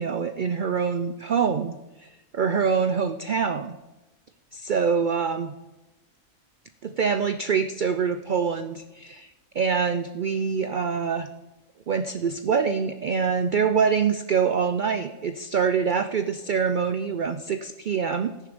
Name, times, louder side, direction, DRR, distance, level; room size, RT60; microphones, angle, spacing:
voice 1, 0.0-1.7 2.0-3.8 4.5-5.5 6.8-9.3 9.5-11.3 11.9-18.5, right 6 dB, 55° right, 9 dB, 0.5 m, -25 dB
14.5 x 10.0 x 5.1 m, 1.0 s
omnidirectional pair, 1.4 m